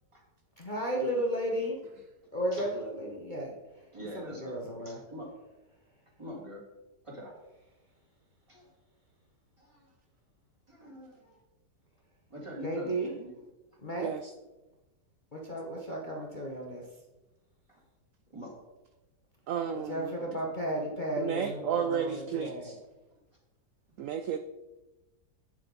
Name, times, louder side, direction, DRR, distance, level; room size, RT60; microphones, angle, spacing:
voice 1, 0.6-1.8 2.3-3.6 4.1-5.0 12.6-13.2 13.8-14.1 15.3-16.8 19.7-22.7, right 1 dB, 30° left, -2 dB, 1.1 m, -34 dB
voice 2, 3.9-4.6 4.8-5.3 6.2-6.6 7.0-7.3 8.5-8.6 9.6-9.8 10.7-11.3 12.3-13.4 18.3-18.5, equal, 15° right, -3 dB, 2.5 m, -44 dB
voice 3, 19.5-20.1 21.2-22.8 24.0-24.4, right 8 dB, 70° right, 8 dB, 0.8 m, -32 dB
9.2 x 7.6 x 4.0 m, 1.1 s
omnidirectional pair, 1.8 m